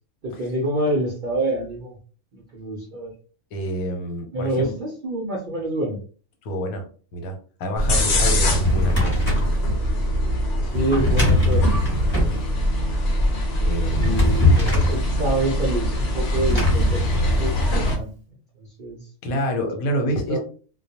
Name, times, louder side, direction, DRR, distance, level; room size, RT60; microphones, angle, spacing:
voice 1, 0.2-2.0 2.3-3.1 4.3-6.0 8.0-8.2 10.6-11.7 14.0-18.1 18.6-19.1 20.1-20.4, right 1 dB, 65° right, -2 dB, 0.4 m, -27 dB
voice 2, 3.5-4.7 6.4-6.9 7.1-9.2 13.6-14.3 19.2-20.4, equal, 85° left, 4 dB, 1.1 m, -27 dB
sound 1, 7.8-18.0, equal, 60° left, 1.0 m, -23 dB
Drawer open or close, 8.2-9.5 10.7-12.4 13.7-15.0 16.3-18.0, left 1 dB, 25° left, 0.8 m, -22 dB
2.3 x 2.1 x 2.7 m, 0.40 s
omnidirectional pair, 1.5 m